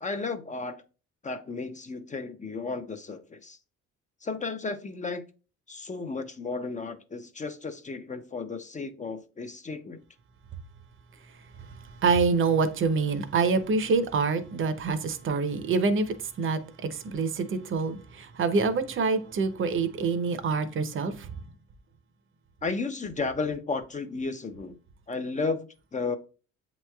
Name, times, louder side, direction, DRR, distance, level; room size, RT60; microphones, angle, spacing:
voice 1, 0.0-0.8 1.2-3.6 4.2-5.2 5.7-10.0 22.6-24.8 25.1-26.2, left 4 dB, 25° left, 0.5 m, -33 dB
voice 2, 11.6-21.3, right 4 dB, 40° right, 0.7 m, -26 dB
7.7 x 3.0 x 2.3 m
cardioid pair, 90°, 30 cm